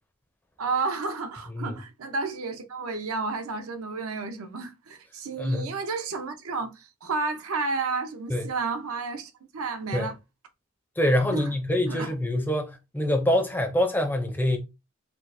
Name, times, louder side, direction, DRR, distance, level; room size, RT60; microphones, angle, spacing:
voice 1, 0.6-10.2 11.3-11.5 11.9-12.1, right 4 dB, 85° right, 0.6 m, -31 dB
voice 2, 5.4-5.7 8.3-8.5 9.9-10.1 11.0-14.6, left 1 dB, 10° left, 0.4 m, -25 dB
4.4 x 2.0 x 2.5 m
head